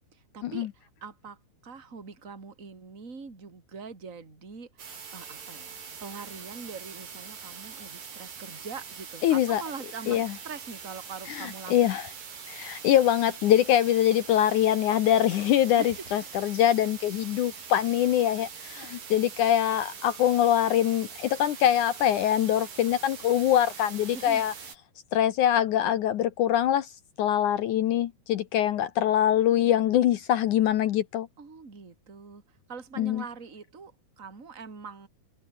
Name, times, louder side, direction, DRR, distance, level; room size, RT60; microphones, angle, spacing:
voice 1, 0.1-4.7 5.1-5.8 6.0-11.8 15.7-16.1 19.0-19.1 24.1-24.4 31.4-35.1, right 5 dB, 20° right, 3.5 m, -43 dB
sound 1, 4.8-24.8, right 6 dB, 50° right, 5.6 m, -43 dB
voice 2, 9.2-9.6 10.1-10.3 11.3-12.1 12.5-24.5 25.1-26.9 27.2-31.3 33.0-33.2, left 11 dB, 85° left, 1.7 m, -24 dB
omnidirectional pair, 5.1 m